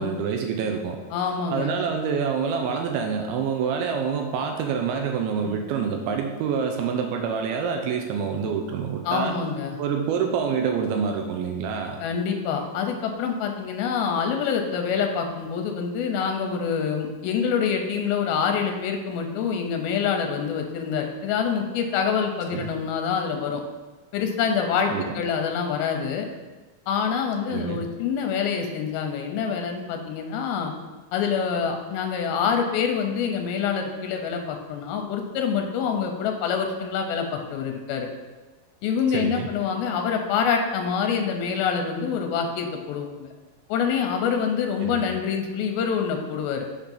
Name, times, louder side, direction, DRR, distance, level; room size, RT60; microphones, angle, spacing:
voice 1, 0.0-1.0 1.2-9.4 9.8-12.0 22.5-22.7 24.9-25.2 27.5-27.8 39.1-39.5 44.8-45.0, right 6 dB, 85° right, 3 dB, 2.5 m, -27 dB
voice 2, 1.1-1.7 9.1-9.8 12.0-23.6 24.1-26.3 26.9-30.7 31.1-38.1 38.8-43.3 43.7-46.7, left 6 dB, 85° left, 4 dB, 2.5 m, -26 dB
6.6 x 3.5 x 5.8 m, 1.2 s
omnidirectional pair, 4.3 m